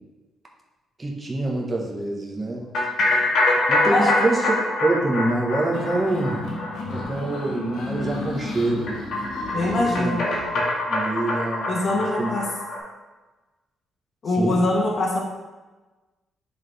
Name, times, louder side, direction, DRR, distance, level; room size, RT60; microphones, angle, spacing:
voice 1, 1.0-2.7 3.0-3.3 3.7-4.5 4.8-6.6 6.9-9.0 9.6-10.2 10.5-10.6 10.9-12.3 14.3-14.6, right 2 dB, 25° right, -1 dB, 1.2 m, -26 dB
sound 1, 2.7-12.8, left 2 dB, 65° left, 1.6 m, -25 dB
sound 2, 5.7-10.5, left 2 dB, 80° left, 1.1 m, -34 dB
voice 2, 9.5-10.3 11.7-12.4 14.2-15.2, left 2 dB, 45° left, -2 dB, 1.2 m, -23 dB
7.3 x 3.9 x 3.4 m, 1.2 s
cardioid pair, 90°, 0 cm